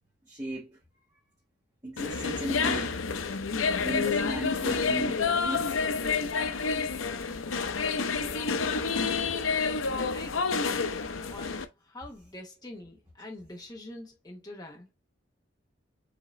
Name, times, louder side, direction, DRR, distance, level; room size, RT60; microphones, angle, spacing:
voice 1, 0.2-0.8 1.8-3.0 3.8-5.8 8.8-9.3, right 1 dB, 20° right, 1.2 m, -37 dB
sound 1, 2.0-11.7, left 5 dB, 80° left, 0.6 m, -29 dB
voice 2, 8.2-8.7 9.3-10.9 11.3-14.9, left 1 dB, 20° left, 1.0 m, -45 dB
5.0 x 2.9 x 3.1 m
head